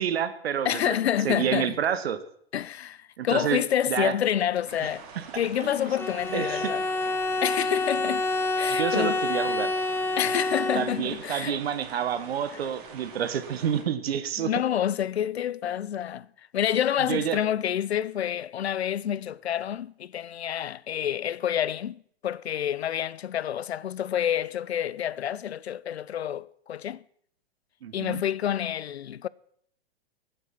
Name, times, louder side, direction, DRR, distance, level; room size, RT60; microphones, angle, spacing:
voice 1, 0.0-1.0 1.2-2.2 3.2-4.1 4.8-4.9 5.1-5.2 5.6-5.7 6.3-6.7 8.7-9.7 10.7-14.5 17.1-17.4 27.8-28.2, right 9 dB, 75° right, 1.4 m, -29 dB
voice 2, 0.6-1.8 2.5-5.1 5.3-6.8 7.4-8.3 8.6-9.2 10.2-11.6 14.4-16.3 16.5-27.0 27.9-29.3, left 10 dB, 90° left, 0.5 m, -28 dB
sound 1, 4.6-13.8, right 6 dB, 55° right, 3.3 m, -45 dB
Bowed string instrument, 6.0-11.2, left 2 dB, 5° left, 0.8 m, -28 dB
22.5 x 7.6 x 5.9 m
hypercardioid pair, 115°, 31 cm